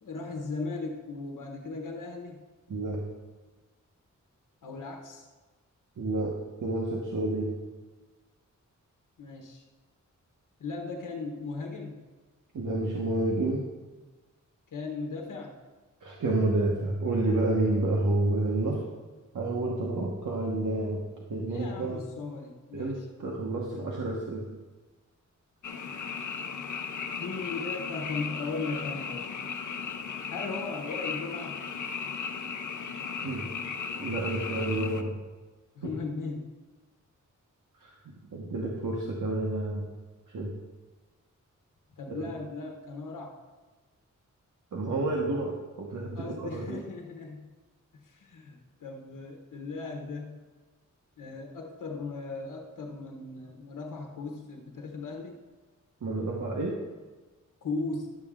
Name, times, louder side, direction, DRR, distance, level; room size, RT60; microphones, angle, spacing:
voice 1, 0.0-2.4 4.6-5.3 9.2-9.6 10.6-12.0 14.7-15.5 21.5-23.1 27.2-29.3 30.3-31.6 35.7-36.5 42.0-43.4 46.1-47.5 47.9-50.4 51.2-55.4 57.6-58.1, left 3 dB, 90° left, 2 dB, 1.1 m, -37 dB
voice 2, 6.0-6.3 6.6-7.5 12.5-13.6 16.0-18.8 19.3-21.0 21.3-22.0 22.7-24.5 33.2-33.5 34.0-35.2 35.8-35.9 37.8-37.9 38.3-39.8 40.3-40.5 42.1-42.3 44.7-45.5 45.8-46.8 56.0-56.7, right 2 dB, 75° right, -2 dB, 1.2 m, -29 dB
Frog, 25.6-35.0, left 6 dB, 70° left, 0.7 m, -36 dB
11.5 x 7.1 x 3.7 m, 1.3 s
wide cardioid pair, 130°, 31 cm